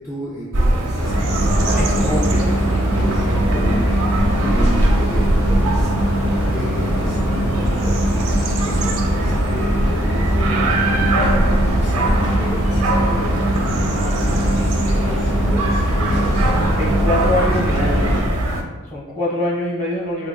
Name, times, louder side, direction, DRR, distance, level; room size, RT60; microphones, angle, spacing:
voice 1, 0.0-1.5 3.3-6.2 6.5-14.1 14.5-16.5, left 1 dB, 15° left, -6 dB, 0.4 m, -34 dB
sound 1, 0.5-18.6, right 1 dB, 85° right, 0.7 m, -21 dB
sound 2, 1.0-18.2, equal, 85° left, 1.2 m, -21 dB
voice 2, 1.8-2.5 16.8-18.2 18.8-20.3, left 1 dB, 35° left, -4 dB, 1.0 m, -24 dB
4.8 x 3.0 x 2.2 m, 1.2 s
head